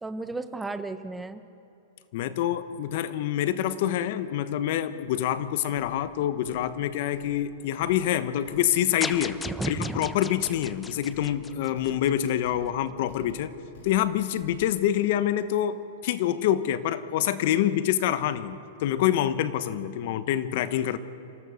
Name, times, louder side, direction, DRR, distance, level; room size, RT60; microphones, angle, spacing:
voice 1, 0.0-1.4 9.4-10.1, right 3 dB, 10° right, 10 dB, 1.0 m, -33 dB
voice 2, 2.1-9.4 9.7-13.5 13.8-21.0, left 11 dB, 55° left, 12 dB, 1.1 m, -26 dB
Thump thud, 5.7-14.9, left 3 dB, 70° left, 6.6 m, -50 dB
sound 1, 9.0-12.3, left 4 dB, 10° left, 0.6 m, -37 dB
26.5 x 15.0 x 6.5 m, 2.8 s
hypercardioid pair, 135°, 0 cm